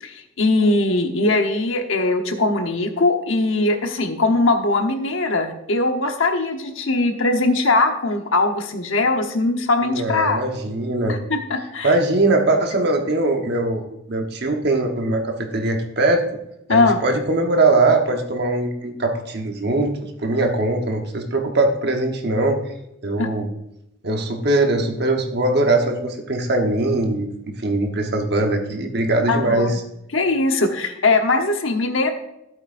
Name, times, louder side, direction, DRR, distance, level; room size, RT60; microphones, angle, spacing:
voice 1, 0.0-10.4 11.1-11.9 16.7-17.0 23.2-23.3 29.3-29.8 30.1-32.1, left 2 dB, 80° left, 5 dB, 1.1 m, -20 dB
voice 2, 9.8-11.2 11.8-13.8 14.1-16.2 16.7-22.6 23.0-23.5 24.0-27.3 27.6-29.7, right 2 dB, 55° right, 3 dB, 1.2 m, -21 dB
13.5 x 7.8 x 2.6 m, 0.85 s
head